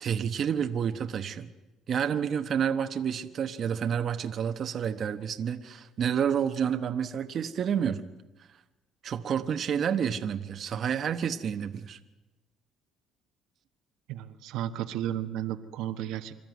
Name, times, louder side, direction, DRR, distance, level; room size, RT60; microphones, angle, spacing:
voice 1, 0.0-1.5 1.9-8.0 9.0-12.0, right 8 dB, 50° right, 7 dB, 1.1 m, -29 dB
voice 2, 14.1-16.3, right 11 dB, 80° right, 7 dB, 1.3 m, -33 dB
26.5 x 13.0 x 9.4 m, 1.1 s
cardioid pair, 100°, 0 cm